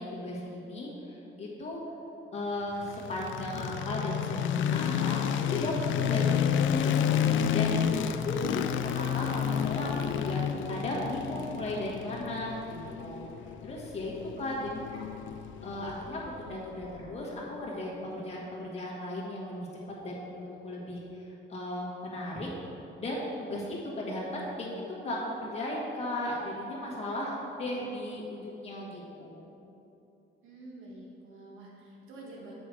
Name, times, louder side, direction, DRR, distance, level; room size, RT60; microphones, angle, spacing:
voice 1, 0.0-1.8 2.3-6.3 6.5-10.4 10.7-13.2 13.6-15.0 15.6-19.7 20.0-22.5 23.0-29.4, left 1 dB, 30° left, -4 dB, 1.6 m, -36 dB
sound 1, 2.8-16.9, left 8 dB, 70° left, 0.4 m, -30 dB
voice 2, 7.6-8.6 14.4-14.9 30.4-32.5, right 1 dB, 75° right, -4 dB, 1.7 m, -48 dB
8.2 x 6.1 x 4.7 m, 2.9 s
wide cardioid pair, 175°, 21 cm